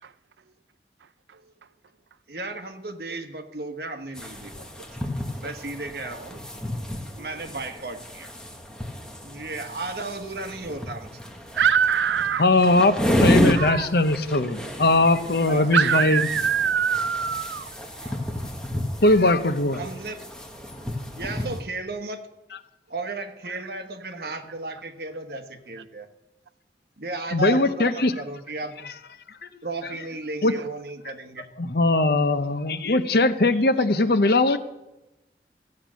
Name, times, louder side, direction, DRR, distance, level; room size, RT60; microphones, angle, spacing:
voice 1, 2.3-4.8 5.4-6.4 7.2-8.3 9.2-11.1 15.5-15.7 19.7-20.3 21.2-22.3 22.9-26.1 27.0-28.9 29.6-31.5, right 2 dB, 60° right, 1.2 m, -34 dB
sound 1, 4.1-21.6, equal, 5° left, 1.4 m, -31 dB
voice 2, 11.6-12.5 13.5-13.9 14.2-14.4 15.7-18.2 30.6-30.7, right 7 dB, 85° right, 0.5 m, -24 dB
voice 3, 12.4-16.2 19.0-19.8 27.3-28.1 30.4-30.5 31.6-34.6, left 2 dB, 60° left, 0.8 m, -20 dB
14.5 x 8.7 x 6.2 m
head